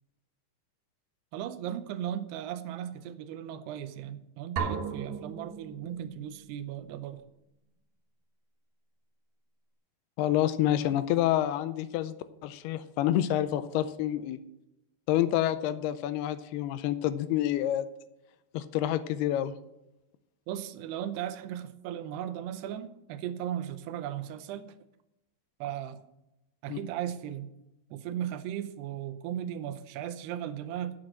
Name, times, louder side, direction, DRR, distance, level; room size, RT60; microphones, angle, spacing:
voice 1, 1.3-7.2 20.5-24.7 25.6-26.0 26.6-27.5 27.9-31.0, right 10 dB, 90° right, 11 dB, 2.8 m, -36 dB
sound 1, 4.6-6.4, right 6 dB, 70° right, 2.9 m, -35 dB
voice 2, 10.2-12.2 12.4-14.4 15.1-17.9 18.5-19.6 26.7-26.8, left 12 dB, 85° left, 13 dB, 2.5 m, -28 dB
9.0 x 7.5 x 6.2 m, 0.89 s
omnidirectional pair, 4.6 m